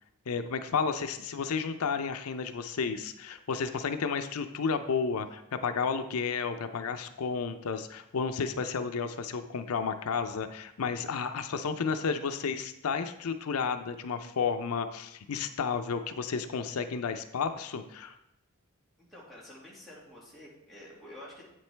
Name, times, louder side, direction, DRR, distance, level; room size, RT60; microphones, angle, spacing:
voice 1, 0.3-18.1, left 5 dB, 90° left, 9 dB, 0.5 m, -32 dB
voice 2, 19.0-21.5, left 1 dB, ahead, -7 dB, 2.1 m, -49 dB
8.4 x 7.4 x 3.3 m, 0.82 s
head